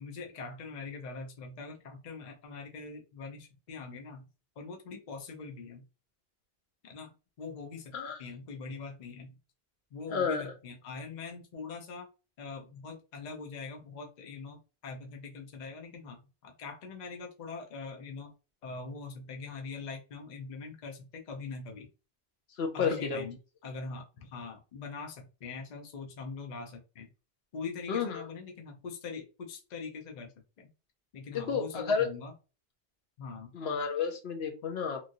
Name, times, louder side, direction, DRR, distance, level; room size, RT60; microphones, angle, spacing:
voice 1, 0.0-4.3 4.6-5.8 6.8-7.1 7.4-7.9 8.2-9.3 9.9-12.1 12.4-14.6 14.8-18.3 18.6-21.9 22.7-23.4 23.6-27.1 27.5-30.7 31.1-32.3 33.2-33.5, left 4 dB, 50° left, 3 dB, 0.7 m, -42 dB
voice 2, 10.1-10.4 22.6-23.3 27.9-28.2 31.3-32.1 33.5-35.0, left 6 dB, 80° left, 4 dB, 1.0 m, -31 dB
3.0 x 2.5 x 2.6 m, 0.32 s
omnidirectional pair, 1.0 m